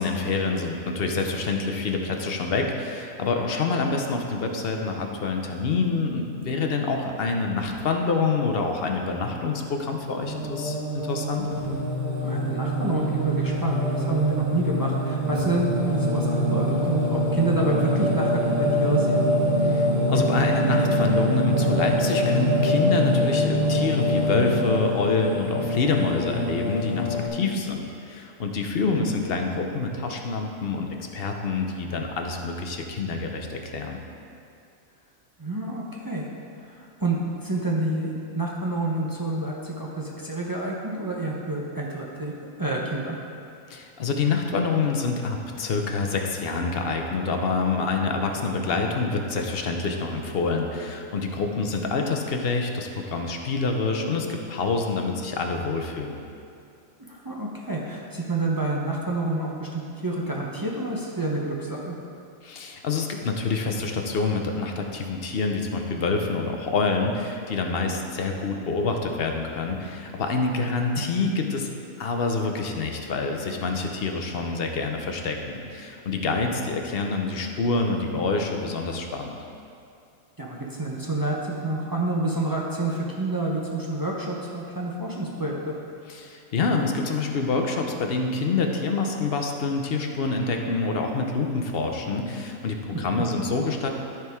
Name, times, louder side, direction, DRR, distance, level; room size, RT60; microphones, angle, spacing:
voice 1, 0.0-11.4 19.6-34.0 43.7-56.2 62.4-71.7 72.0-79.4 86.1-93.9, left 4 dB, 55° left, 3 dB, 0.8 m, -27 dB
Singing, 10.2-27.3, equal, 70° right, 2.2 m, -24 dB
voice 2, 12.2-19.2 29.0-29.1 35.4-36.2 36.6-42.3 42.6-43.2 57.1-62.0 71.0-71.3 80.4-85.7 93.1-93.3, right 2 dB, 20° right, -3 dB, 0.6 m, -28 dB
13.0 x 4.6 x 3.6 m, 2.5 s
omnidirectional pair, 1.4 m